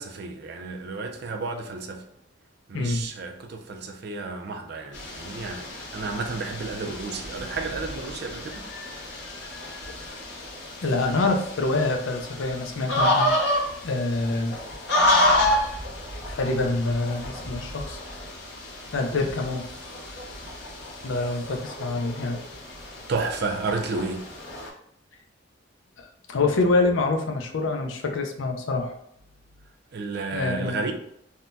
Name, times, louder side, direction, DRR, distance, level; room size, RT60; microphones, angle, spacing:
voice 1, 0.0-2.1 2.7-8.7 23.1-24.2 29.9-30.9, right 3 dB, 60° right, 0.5 m, -32 dB
voice 2, 2.7-3.1 10.8-13.3 13.8-14.6 16.3-18.0 18.9-19.7 21.0-22.4 26.0-28.9 30.3-30.8, left 3 dB, 85° left, 0.5 m, -26 dB
sound 1, 4.9-24.7, left 1 dB, 65° left, 1.0 m, -29 dB
3.6 x 2.2 x 2.6 m
head